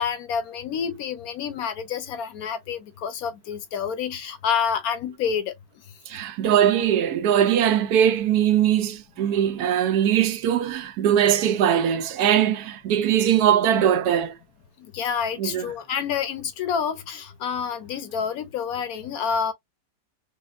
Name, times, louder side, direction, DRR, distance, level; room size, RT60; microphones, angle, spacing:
voice 1, 0.0-5.5 14.8-19.5, left 7 dB, 70° left, 1.0 m, -28 dB
voice 2, 6.1-14.3 15.4-15.7, right 10 dB, 75° right, 1.1 m, -21 dB
4.2 x 2.2 x 2.4 m
omnidirectional pair, 1.8 m